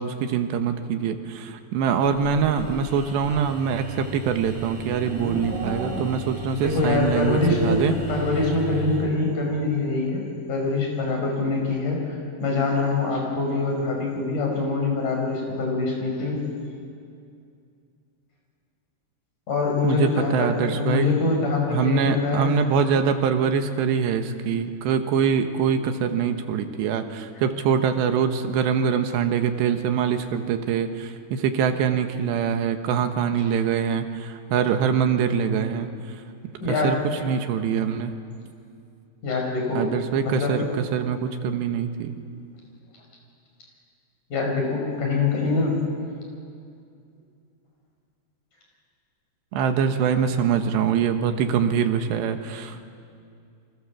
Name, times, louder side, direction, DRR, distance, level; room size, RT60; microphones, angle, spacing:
voice 1, 0.0-7.9 19.8-21.1 21.7-35.9 36.8-37.0 37.2-38.1 39.8-40.7 40.9-42.1 49.5-52.9, right 7 dB, 75° right, 7 dB, 3.4 m, -24 dB
sound 1, 2.0-9.1, right 2 dB, 15° left, 5.9 m, -37 dB
Livestock farm animals working animals, 3.3-6.5, right 1 dB, 60° right, 7.0 m, -35 dB
voice 2, 6.6-10.2 10.5-12.0 12.4-16.4 19.5-22.5 36.6-37.0 39.2-39.9 40.2-40.7 44.3-45.7, left 3 dB, 45° left, 0 dB, 6.8 m, -24 dB
29.0 x 24.5 x 7.4 m, 2.4 s
omnidirectional pair, 5.2 m